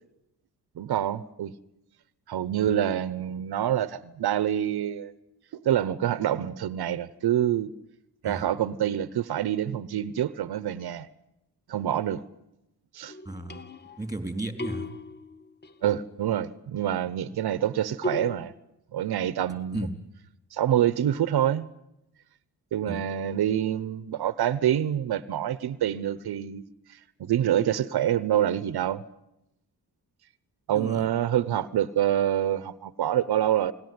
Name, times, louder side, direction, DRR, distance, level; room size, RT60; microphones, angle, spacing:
voice 1, 0.8-1.5 2.3-5.1 5.5-7.7 8.2-11.1 11.7-12.2 12.9-13.1 15.8-18.5 18.9-19.9 20.5-21.7 22.7-26.6 26.9-29.0 30.7-33.7, right 11 dB, 80° right, 1.0 m, -26 dB
sound 1, 13.1-14.2 14.6-15.8 18.0-18.4, left 2 dB, 25° left, 1.3 m, -36 dB
voice 2, 13.3-13.6 14.0-14.9 19.7-19.9 22.9-23.0 30.7-31.1, right 2 dB, 10° right, 4.0 m, -34 dB
28.5 x 19.5 x 9.6 m
wide cardioid pair, 115°, 38 cm